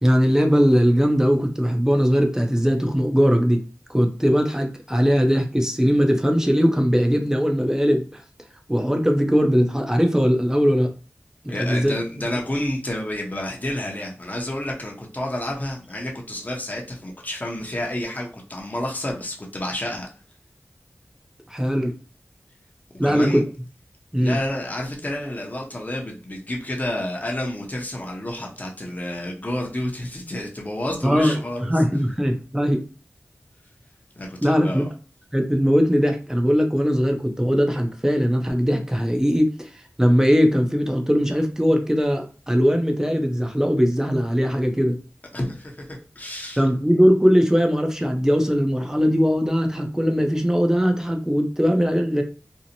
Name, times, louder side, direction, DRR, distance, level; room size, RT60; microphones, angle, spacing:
voice 1, 0.0-3.6 3.9-8.2 8.7-10.9 11.4-11.9 21.5-21.9 23.0-23.4 24.1-24.4 31.0-31.4 31.7-32.8 34.4-34.8 35.3-39.7 40.0-45.0 46.6-52.2, equal, 10° right, 3 dB, 0.5 m, -20 dB
voice 2, 11.5-20.1 23.0-23.4 24.2-31.8 34.2-34.9 45.3-46.6, left 1 dB, 35° left, -1 dB, 0.7 m, -30 dB
2.6 x 2.1 x 2.8 m, 0.37 s
wide cardioid pair, 40°, 5 cm